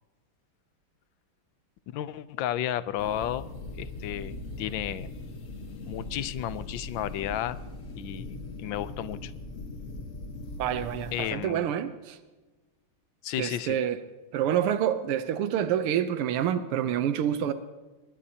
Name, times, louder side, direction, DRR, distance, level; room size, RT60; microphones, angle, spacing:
voice 1, 1.9-3.5 3.8-5.1 5.9-7.6 8.0-9.3 11.1-11.7 13.2-13.8, left 11 dB, 70° left, 15 dB, 1.3 m, -33 dB
sound 1, 3.0-11.3, left 2 dB, 40° left, 1.5 m, -40 dB
voice 2, 10.6-12.2 13.4-14.0 14.3-17.5, right 10 dB, 90° right, 10 dB, 1.7 m, -27 dB
24.0 x 21.0 x 2.8 m, 1.2 s
omnidirectional pair, 2.4 m